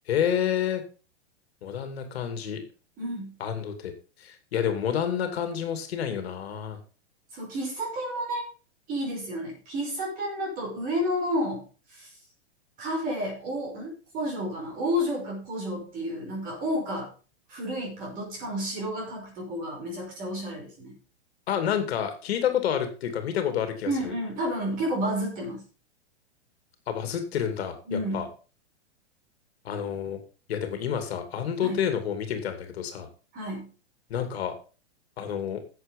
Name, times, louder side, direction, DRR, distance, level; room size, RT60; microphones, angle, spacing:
voice 1, 0.1-0.8 1.6-2.6 3.4-3.9 4.2-6.8 21.5-24.1 26.9-28.3 29.6-30.2 30.5-33.1 34.1-34.5 35.2-35.6, left 9 dB, 60° left, 7 dB, 2.6 m, -29 dB
voice 2, 3.0-3.3 7.3-8.5 8.9-11.6 11.9-12.1 12.8-17.1 17.5-20.9 23.9-25.6 27.9-28.3 31.6-31.8 33.3-33.7, equal, 25° right, 0 dB, 5.6 m, -31 dB
11.0 x 7.8 x 5.3 m, 0.36 s
hypercardioid pair, 160°, 34 cm